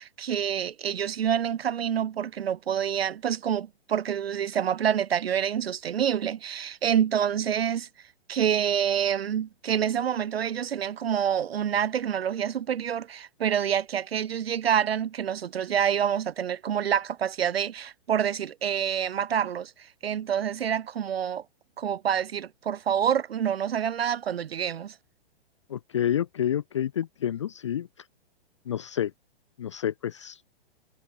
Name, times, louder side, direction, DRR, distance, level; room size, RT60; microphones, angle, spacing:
voice 1, 0.0-7.9 8.3-21.4 21.8-25.0, right 9 dB, 70° right, 1.3 m, -27 dB
voice 2, 25.7-27.9 28.7-29.1 29.6-30.4, left 10 dB, 30° left, 0.6 m, -29 dB
hypercardioid pair, 175°, 32 cm